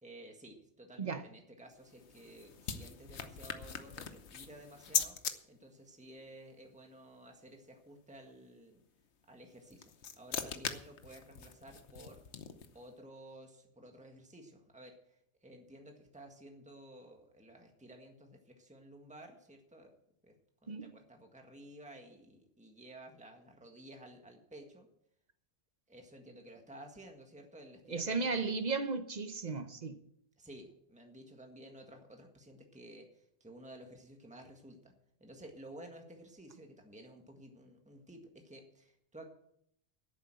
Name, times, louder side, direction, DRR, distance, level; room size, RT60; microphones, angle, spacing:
voice 1, 0.0-5.2 5.5-8.8 9.3-12.2 12.7-19.9 20.2-20.4 20.6-24.9 25.9-28.5 30.4-34.9 35.2-39.3, right 1 dB, 5° right, 1.6 m, -54 dB
sound 1, 1.7-5.3 9.5-12.8, left 7 dB, 85° left, 1.2 m, -40 dB
voice 2, 27.9-30.0, right 4 dB, 45° right, 0.9 m, -35 dB
11.0 x 8.6 x 7.6 m
omnidirectional pair, 1.1 m